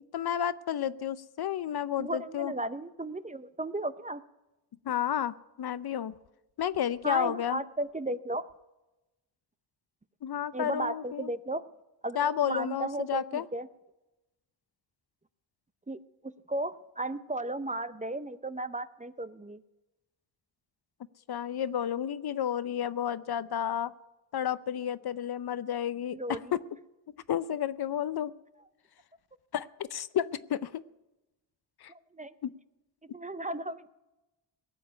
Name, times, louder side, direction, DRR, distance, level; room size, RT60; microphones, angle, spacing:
voice 1, 0.1-2.5 4.8-6.1 6.6-7.6 10.2-11.3 12.1-13.4 21.3-23.9 24.3-26.4 27.3-28.3 29.5-30.8 31.8-31.9 32.4-32.5, left 10 dB, 55° left, 15 dB, 0.7 m, -31 dB
voice 2, 2.0-4.2 7.0-8.4 10.5-11.6 12.0-13.7 15.9-19.6 26.1-26.5 31.9-32.3 33.1-33.9, right 2 dB, 15° right, 12 dB, 0.6 m, -35 dB
18.0 x 7.3 x 9.9 m, 1.0 s
cardioid pair, 80°, 45 cm